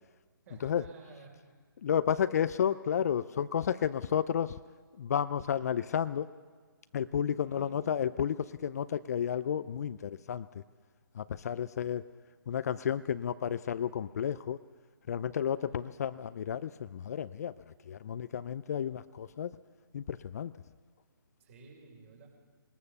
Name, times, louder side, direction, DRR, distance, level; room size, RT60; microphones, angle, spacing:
voice 1, 0.5-1.3 7.4-7.8 15.6-15.8 21.4-22.3, right 3 dB, 35° right, 1 dB, 5.3 m, -52 dB
voice 2, 1.8-4.6 5.0-6.3 6.9-10.6 11.1-12.0 12.5-14.6 15.1-19.5 19.9-20.5, left 8 dB, 45° left, 14 dB, 0.5 m, -32 dB
21.0 x 19.0 x 6.9 m, 1.5 s
hypercardioid pair, 150°, 12 cm